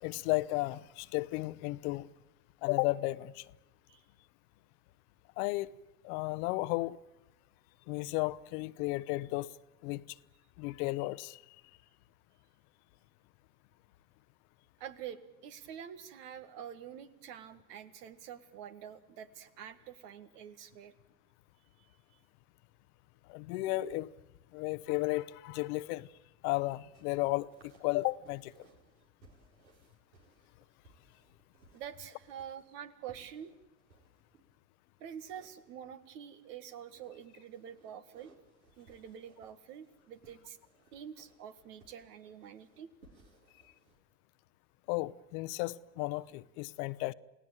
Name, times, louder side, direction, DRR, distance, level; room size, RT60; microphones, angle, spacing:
voice 1, 0.0-2.1 2.6-3.5 5.4-5.7 6.0-7.0 7.9-9.5 9.8-10.2 10.6-11.4 23.3-24.1 24.5-26.1 26.4-28.7 44.9-47.1, left 20 dB, 60° left, 1.0 m, -34 dB
voice 2, 14.8-20.9 21.8-22.2 31.7-33.5 35.0-38.3 38.8-40.6 40.9-42.9, right 9 dB, 70° right, 2.0 m, -47 dB
sound 1, 26.6-34.4 35.1-36.2 36.6-44.0, right 3 dB, 90° right, 4.5 m, -64 dB
28.5 x 17.5 x 9.1 m
hypercardioid pair, 85°, 49 cm